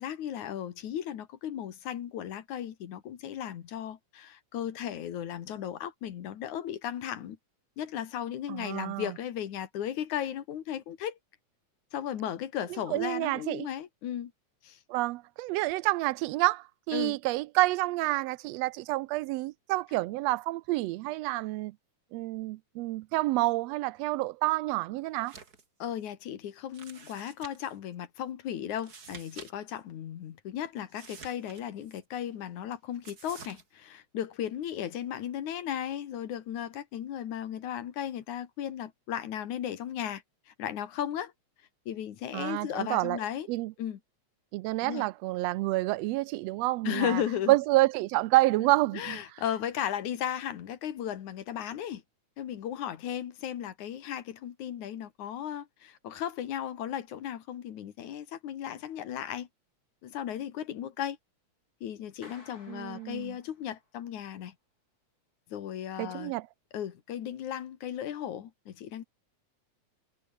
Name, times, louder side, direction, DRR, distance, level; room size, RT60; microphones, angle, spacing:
voice 1, 0.0-7.4 7.8-11.2 11.9-14.3 14.6-14.8 16.9-17.2 25.8-41.3 41.9-43.5 43.8-44.0 44.8-45.1 46.8-47.5 48.9-52.0 52.4-59.5 60.0-61.2 61.8-64.5 65.5-66.3 66.7-69.0, left 10 dB, 75° left, 3.0 m, -36 dB
voice 2, 8.5-9.1 12.9-13.7 14.9-21.7 22.1-25.3 42.3-43.2 43.5-43.7 44.5-47.2 47.5-49.2 62.7-63.3 66.0-66.5, right 19 dB, 85° right, 1.5 m, -28 dB
sound 1, 25.2-25.6 26.0-26.1 26.7-27.8 28.7-29.5 29.8-29.9 30.9-32.0 33.0-33.6, right 5 dB, 30° right, 2.6 m, -49 dB
Clapping, 62.2-64.0, left 3 dB, 30° left, 4.8 m, -55 dB
omnidirectional pair, 3.5 m